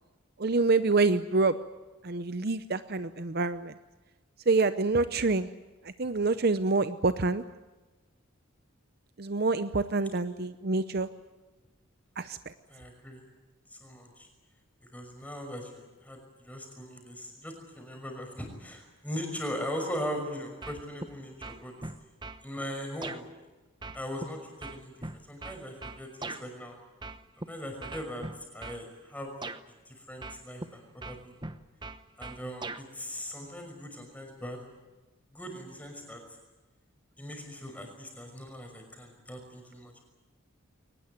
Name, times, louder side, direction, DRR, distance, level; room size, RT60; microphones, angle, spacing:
voice 1, 0.4-1.6 2.0-3.7 4.5-5.5 6.0-7.4 9.2-11.1 12.2-12.4, right 3 dB, 45° right, 12 dB, 0.7 m, -26 dB
voice 2, 12.7-13.2 13.7-14.3 14.8-21.7 22.4-23.3 23.9-26.8 27.5-28.3 28.5-29.3 29.7-31.5 32.2-34.6 35.3-36.2 37.2-40.0, equal, 5° left, 3 dB, 5.8 m, -40 dB
sound 1, 20.6-21.1 21.4-22.4 23.0-23.2 23.8-26.4 27.0-27.5 27.8-28.8 29.4-29.6 30.2-30.7 31.0-32.8, right 3 dB, 20° right, 0.9 m, -40 dB
22.5 x 19.5 x 9.4 m, 1.2 s
head